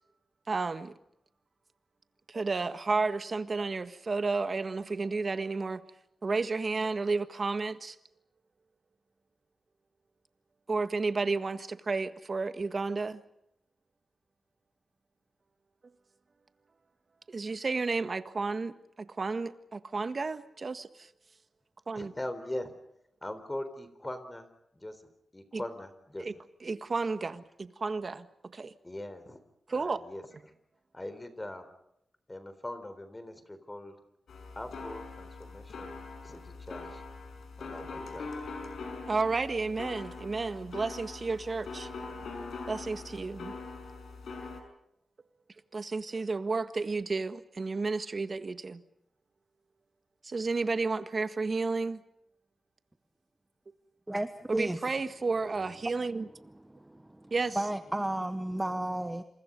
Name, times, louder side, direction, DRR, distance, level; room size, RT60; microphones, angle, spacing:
voice 1, 0.5-0.9 2.3-5.8 6.2-8.0 10.7-13.2 17.3-21.1 21.9-22.1 25.5-25.6 26.2-26.3 26.6-28.3 28.5-28.7 29.7-30.0 39.1-41.9 42.7-43.5 45.7-48.8 50.2-52.0 54.5-56.3 57.3-57.6, right 3 dB, 40° right, 1.6 m, -32 dB
voice 2, 21.9-22.7 23.2-24.5 24.7-25.0 25.3-26.3 28.8-29.4 29.7-30.2 30.9-31.6 32.3-33.9 34.6-37.0 37.6-38.3, left 1 dB, 15° left, 4.0 m, -41 dB
sound 1, 34.3-44.6, left 3 dB, 85° left, 5.6 m, -42 dB
voice 3, 54.1-54.8 56.5-59.2, right 1 dB, 10° right, 1.2 m, -33 dB
28.0 x 27.0 x 5.4 m
wide cardioid pair, 105°, 0 cm